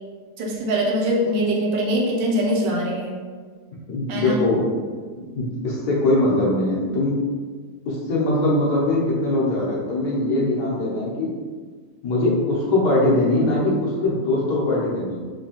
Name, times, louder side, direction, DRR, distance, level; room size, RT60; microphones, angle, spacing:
voice 1, 0.4-3.2 4.1-4.4, equal, 85° right, -1 dB, 1.4 m, -22 dB
voice 2, 3.9-4.6 5.2-7.2 7.9-11.3 12.0-15.2, left 2 dB, 65° left, -6 dB, 1.4 m, -21 dB
3.7 x 2.9 x 2.9 m, 1.5 s
omnidirectional pair, 2.0 m